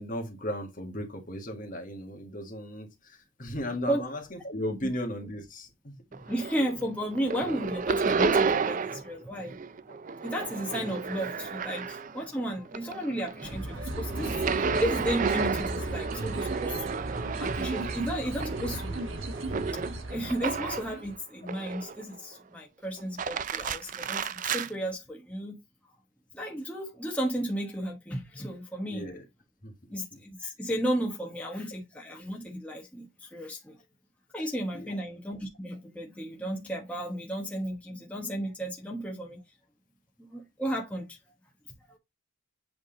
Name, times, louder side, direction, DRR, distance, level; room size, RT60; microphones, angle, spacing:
voice 1, 0.0-6.0 7.3-7.4 9.9-10.0 28.8-29.2 29.6-29.7 30.1-30.2 34.7-35.0, left 1 dB, 40° left, 1.6 m, -36 dB
sound 1, 6.1-6.8 7.1-9.1 9.4-12.3 12.7-21.0 21.5-22.2 23.0-24.7, right 5 dB, 35° right, 0.4 m, -31 dB
voice 2, 6.2-9.6 10.2-17.0 17.4-19.0 19.5-19.8 20.1-25.6 26.3-29.0 29.9-33.8 34.3-39.4 40.2-41.2 41.9-42.0, equal, 5° left, 1.1 m, -34 dB
sound 2, 13.4-21.1, right 1 dB, 70° right, 1.2 m, -36 dB
8.0 x 3.5 x 3.8 m
head